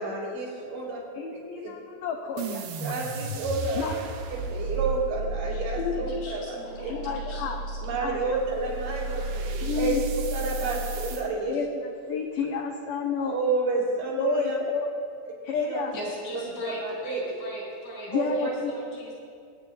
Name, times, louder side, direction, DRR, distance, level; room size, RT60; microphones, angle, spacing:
voice 1, 0.0-1.0 1.3-1.7 2.8-3.9 4.3-6.9 7.8-11.6 13.3-14.6 15.5-15.8 16.4-16.5 16.8-17.4 18.1-18.5, right 3 dB, 85° right, -5 dB, 4.7 m, -30 dB
voice 2, 1.2-2.9 3.8-3.9 5.8-6.0 6.9-7.6 8.0-8.4 9.6-10.0 11.5-11.7 12.1-13.4 14.2-14.9 15.4-15.9 18.1-18.7, left 6 dB, 85° left, 3 dB, 1.8 m, -30 dB
sound 1, 2.4-11.3, right 2 dB, 70° right, 2.2 m, -33 dB
voice 3, 5.9-7.8 15.9-19.1, equal, 65° left, -5 dB, 5.2 m, -39 dB
22.5 x 9.4 x 2.7 m, 2.4 s
omnidirectional pair, 4.6 m